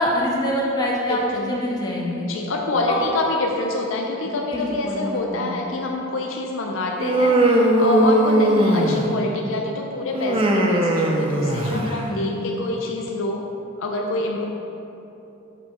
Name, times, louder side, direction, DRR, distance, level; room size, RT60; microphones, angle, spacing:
voice 1, 0.0-2.3 2.9-3.0 4.5-5.5 11.7-11.8 12.1-12.4, left 1 dB, 20° left, -3 dB, 0.6 m, -25 dB
voice 2, 1.1-1.5 2.3-13.4 13.8-14.4, left 2 dB, 75° left, 1 dB, 0.5 m, -26 dB
Human voice, 7.0-9.3 10.1-12.0, right 1 dB, 25° right, 0.5 m, -19 dB
7.4 x 6.5 x 3.0 m, 3.0 s
head